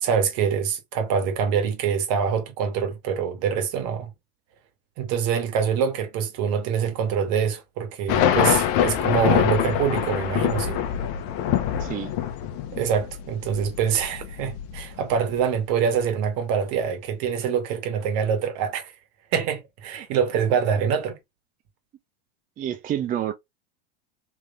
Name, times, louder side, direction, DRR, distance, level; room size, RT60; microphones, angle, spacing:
voice 1, 0.0-4.1 5.0-10.8 12.7-18.9 19.3-21.2, right 7 dB, 55° right, 1.5 m, -25 dB
sound 1, 8.1-15.4, left 10 dB, 50° left, 0.8 m, -24 dB
voice 2, 11.8-12.1 22.6-23.3, right 11 dB, 30° right, 0.6 m, -28 dB
3.6 x 3.1 x 2.5 m
hypercardioid pair, 105°, 30 cm